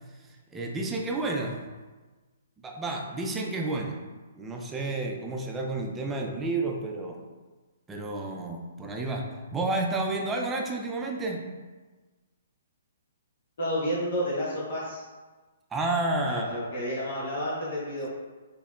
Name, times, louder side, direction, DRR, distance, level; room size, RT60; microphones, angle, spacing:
voice 1, 0.5-1.6 2.6-4.0 4.4-7.2 7.9-11.4 15.7-16.5, right 2 dB, 15° right, 1 dB, 0.5 m, -30 dB
voice 2, 13.6-15.0 16.3-18.1, equal, 60° left, -6 dB, 1.0 m, -30 dB
4.1 x 2.8 x 2.4 m, 1.3 s
hypercardioid pair, 130°, 0 cm